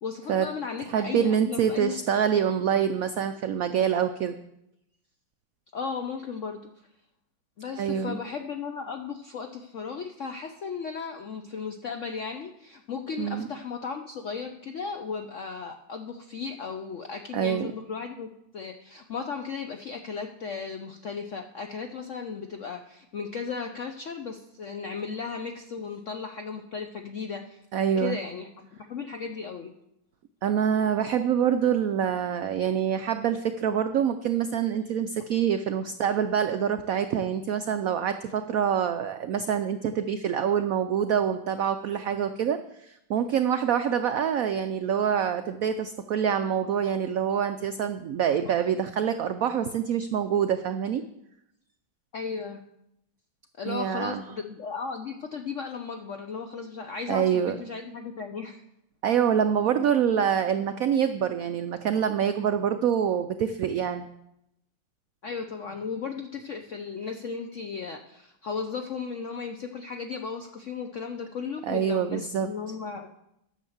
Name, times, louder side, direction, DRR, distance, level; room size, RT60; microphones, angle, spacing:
voice 1, 0.0-1.9 5.7-6.6 7.6-27.6 28.0-29.7 52.1-52.6 53.6-58.6 65.2-73.1, left 5 dB, 70° left, 5 dB, 0.7 m, -35 dB
voice 2, 0.9-4.3 7.7-8.2 13.2-13.5 17.3-17.7 27.7-28.2 30.4-51.0 53.7-54.2 57.1-57.6 59.0-64.1 71.7-72.5, right 8 dB, 80° right, 9 dB, 0.7 m, -26 dB
9.8 x 6.6 x 7.1 m, 0.82 s
omnidirectional pair, 2.1 m